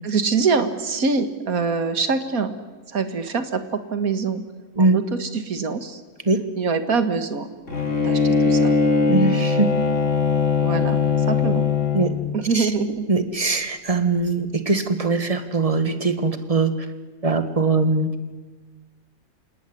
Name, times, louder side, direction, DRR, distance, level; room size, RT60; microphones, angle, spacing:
voice 1, 0.0-2.5 2.9-3.6 3.9-4.4 4.8-6.0 6.6-7.5 8.0-8.7 10.6-11.0 11.2-11.7 12.3-13.1, right 4 dB, 80° right, 10 dB, 2.2 m, -24 dB
Bowed string instrument, 7.7-12.3, left 5 dB, 55° left, 4.4 m, -20 dB
voice 2, 9.1-9.7 11.9-12.1 12.5-12.7 13.1-16.7 17.2-18.1, right 3 dB, 25° right, 9 dB, 1.7 m, -21 dB
27.5 x 18.0 x 9.9 m, 1.3 s
omnidirectional pair, 1.5 m